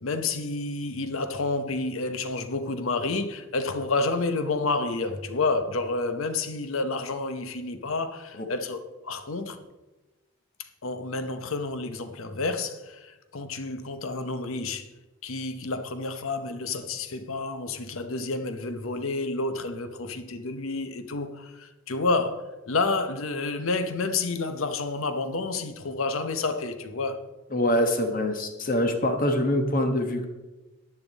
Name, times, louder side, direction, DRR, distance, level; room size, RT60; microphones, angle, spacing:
voice 1, 0.0-9.6 10.8-14.9 15.2-27.2, left 3 dB, 75° left, 0.8 m, -29 dB
voice 2, 27.5-30.2, left 1 dB, 40° left, 1.3 m, -24 dB
10.5 x 10.0 x 4.0 m
head